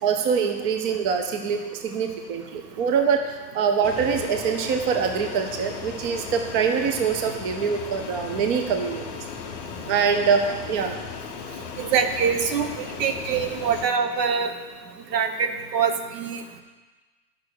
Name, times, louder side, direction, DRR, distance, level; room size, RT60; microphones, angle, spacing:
voice 1, 0.0-9.3 9.8-11.0, right 6 dB, 35° right, 5 dB, 0.7 m, -24 dB
Fixed-wing aircraft airplane, 3.8-13.8, left 7 dB, 20° left, 0.5 m, -37 dB
voice 2, 11.8-14.5 15.1-16.6, right 6 dB, 75° right, 7 dB, 1.3 m, -24 dB
10.0 x 6.0 x 6.5 m, 1.3 s
hypercardioid pair, 150°, 50 cm